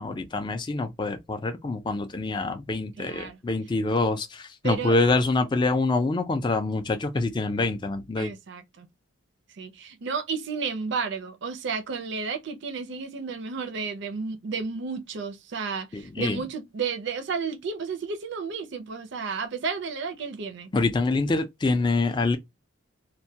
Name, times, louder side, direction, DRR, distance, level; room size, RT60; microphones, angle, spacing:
voice 1, 0.0-8.3 15.9-16.4 20.7-22.4, left 3 dB, 20° left, 0.3 m, -26 dB
voice 2, 3.0-3.4 4.6-5.0 8.2-8.9 9.6-20.7, right 5 dB, 55° right, 0.5 m, -32 dB
2.2 x 2.1 x 2.6 m
head